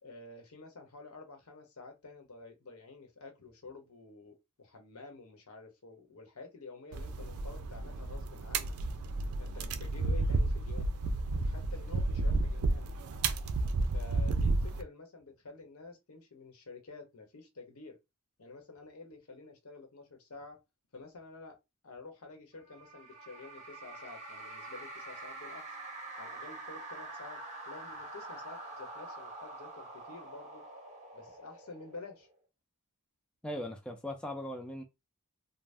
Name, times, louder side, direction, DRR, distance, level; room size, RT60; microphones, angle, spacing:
voice 1, 0.0-8.8 9.4-10.9 11.3-12.9 13.9-18.0 18.4-20.6 20.9-21.6 21.8-25.8 26.2-27.4 27.7-30.6 31.1-32.3, left 3 dB, 75° left, 0.9 m, -50 dB
sound 1, 6.9-14.8, right 2 dB, 75° right, 0.4 m, -32 dB
sound 2, 22.7-32.3, right 2 dB, 35° right, 0.8 m, -46 dB
voice 2, 33.4-34.8, left 1 dB, 5° left, 0.4 m, -39 dB
2.6 x 2.0 x 3.3 m
head